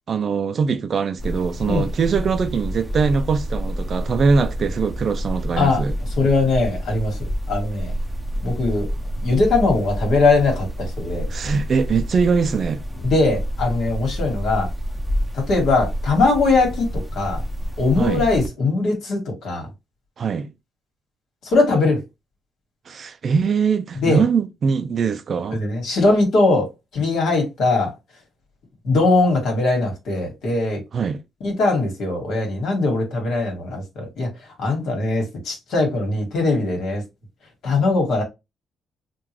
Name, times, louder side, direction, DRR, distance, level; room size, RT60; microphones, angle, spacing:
voice 1, 0.1-6.0 11.3-12.8 18.0-18.2 20.2-20.5 22.9-25.6 30.9-31.2, right 5 dB, 50° right, 0.3 m, -22 dB
sound 1, 1.2-18.5, equal, 5° left, 0.7 m, -28 dB
voice 2, 6.2-7.9 8.4-8.9 9.2-11.3 13.0-14.7 15.3-17.4 17.8-19.7 21.4-22.0 24.0-24.2 25.5-27.9 28.8-30.8 31.4-34.3 34.6-37.0 37.6-38.2, left 3 dB, 75° left, 1.7 m, -20 dB
3.7 x 2.4 x 2.9 m
cardioid pair, 90°, 0 cm